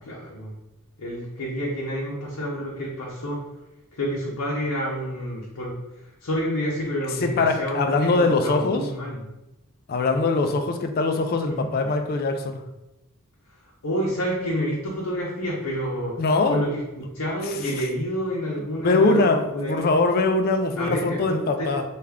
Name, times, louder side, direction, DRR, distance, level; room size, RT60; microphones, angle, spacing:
voice 1, 0.1-0.5 1.0-3.4 3.9-9.2 11.5-11.7 13.8-16.1 16.5-19.9 20.8-21.7, equal, 80° left, -4 dB, 0.7 m, -29 dB
voice 2, 7.2-8.9 9.9-12.6 16.2-16.6 18.8-21.8, left 3 dB, 45° left, 6 dB, 0.3 m, -22 dB
3.3 x 2.4 x 3.5 m, 0.97 s
head